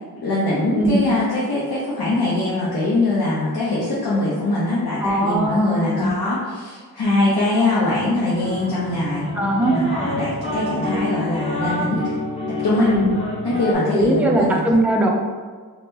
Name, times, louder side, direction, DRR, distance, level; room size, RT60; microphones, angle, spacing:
voice 1, 0.2-9.3 9.6-12.1 12.6-12.9 13.4-14.6, left 2 dB, 80° left, -8 dB, 0.7 m, -22 dB
voice 2, 0.7-1.1 5.0-6.1 9.3-9.8 12.8-13.1 13.9-15.1, right 1 dB, 5° right, 0 dB, 0.3 m, -19 dB
sound 1, 8.3-13.7, left 1 dB, 15° left, 1.1 m, -28 dB
3.5 x 2.1 x 2.6 m, 1.5 s
wide cardioid pair, 75°, 37 cm